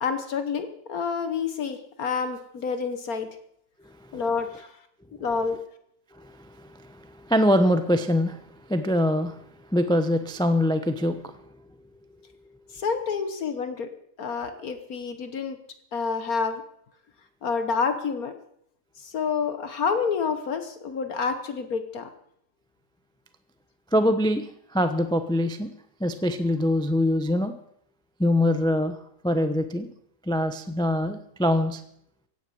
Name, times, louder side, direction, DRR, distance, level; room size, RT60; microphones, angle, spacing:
voice 1, 0.0-3.3 4.1-4.8 5.2-5.6 12.7-13.9 14.2-15.6 15.9-16.6 17.4-18.3 19.0-22.1, left 5 dB, 65° left, 9 dB, 1.5 m, -28 dB
voice 2, 3.8-4.2 5.1-5.2 6.1-8.4 8.7-9.4 9.7-11.5 23.9-24.5 24.7-25.7 26.0-27.5 28.2-29.0 29.2-29.9 30.3-31.8, left 1 dB, 5° left, 9 dB, 0.6 m, -24 dB
16.5 x 9.2 x 7.8 m, 0.72 s
omnidirectional pair, 1.7 m